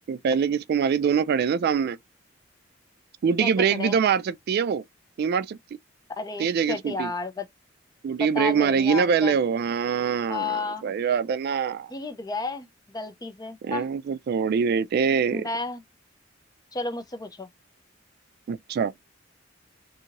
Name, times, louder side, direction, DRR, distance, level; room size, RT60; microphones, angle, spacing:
voice 1, 0.1-2.0 3.2-4.8 5.2-5.6 6.4-7.1 8.0-11.9 13.6-15.5 18.5-18.9, right 6 dB, 55° right, 0.3 m, -24 dB
voice 2, 3.4-4.0 6.2-7.5 8.2-9.4 10.3-10.8 11.9-13.9 15.3-15.8 16.7-17.5, left 3 dB, 20° left, 0.5 m, -32 dB
2.6 x 2.6 x 2.8 m
head